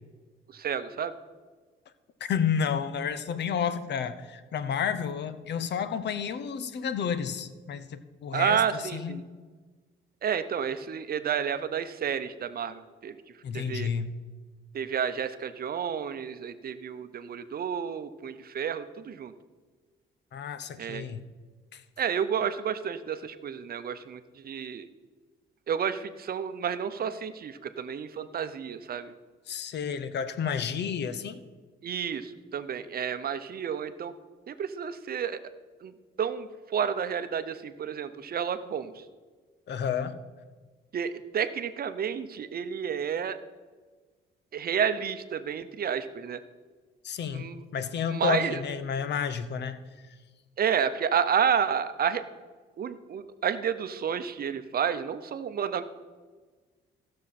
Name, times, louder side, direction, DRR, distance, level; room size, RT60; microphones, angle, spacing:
voice 1, 0.5-1.1 8.3-9.2 10.2-13.1 13.5-13.9 14.7-19.3 20.8-21.1 22.0-24.9 25.7-29.1 31.8-34.1 34.5-35.4 35.8-39.0 40.9-43.4 44.5-46.4 47.3-47.6 48.1-48.6 50.6-52.2 52.8-55.8, right 7 dB, 50° right, 11 dB, 0.7 m, -30 dB
voice 2, 2.2-9.2 13.4-14.1 20.3-21.2 21.7-21.8 29.5-31.4 39.7-40.2 47.0-49.8, left 7 dB, 60° left, 12 dB, 0.8 m, -31 dB
15.5 x 6.5 x 4.2 m, 1.4 s
cardioid pair, 90°, 20 cm